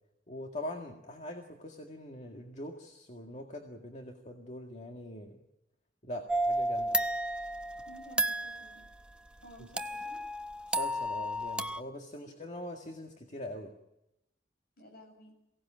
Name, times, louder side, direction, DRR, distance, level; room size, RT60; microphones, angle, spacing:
voice 1, 0.3-5.4 6.0-7.0 10.7-13.7, left 1 dB, 40° left, 2 dB, 1.9 m, -43 dB
sound 1, 6.3-8.8 9.8-11.8, right 1 dB, 5° right, 0.7 m, -32 dB
voice 2, 7.9-8.8 9.4-10.2 12.2-12.4 14.8-15.3, equal, 60° left, 3 dB, 7.6 m, -53 dB
23.0 x 17.5 x 8.8 m, 0.89 s
head